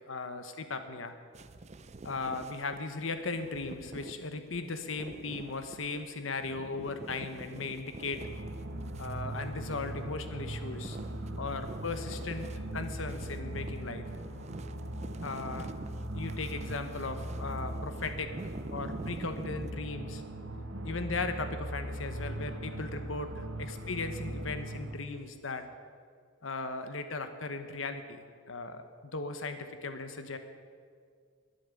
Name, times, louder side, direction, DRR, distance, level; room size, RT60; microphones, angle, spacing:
voice 1, 0.1-1.2 2.0-8.2 9.0-11.0 11.4-12.5 12.7-14.1 15.2-15.7 16.1-18.3 18.7-20.2 20.8-25.7 26.4-28.8 29.1-30.4, left 3 dB, 80° left, 8 dB, 1.1 m, -37 dB
sound 1, 1.3-19.7, right 2 dB, 35° right, 0.5 m, -47 dB
sound 2, 8.2-25.0, right 1 dB, 85° right, 1.3 m, -39 dB
11.5 x 10.5 x 9.8 m, 2.1 s
head